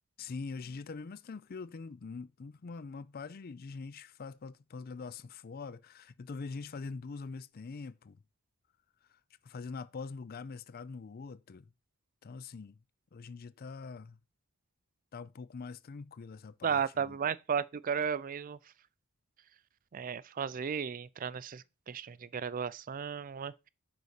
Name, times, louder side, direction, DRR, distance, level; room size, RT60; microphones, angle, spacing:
voice 1, 0.2-8.2 9.1-11.7 12.2-12.8 13.1-14.2 15.1-17.2, left 4 dB, 40° left, 0.4 m, -44 dB
voice 2, 16.6-18.6 19.9-23.7, right 7 dB, 40° right, 0.4 m, -34 dB
9.4 x 4.0 x 6.5 m
head